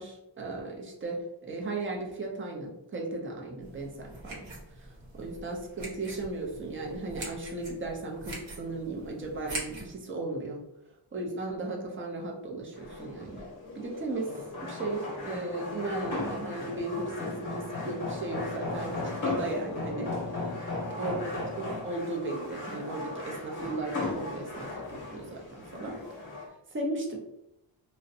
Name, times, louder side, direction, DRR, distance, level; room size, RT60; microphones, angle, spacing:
voice 1, 0.0-4.5 4.8-10.6 11.1-13.4 13.7-14.4 14.7-20.6 21.0-24.7 25.1-26.0 26.7-27.2, right 2 dB, 25° right, 0 dB, 0.4 m, -36 dB
sound 1, 3.6-9.9, right 2 dB, 65° right, 0.9 m, -43 dB
sound 2, 12.7-26.5, left 2 dB, 40° left, 0.7 m, -36 dB
2.4 x 2.0 x 2.6 m, 0.85 s
wide cardioid pair, 150°, 48 cm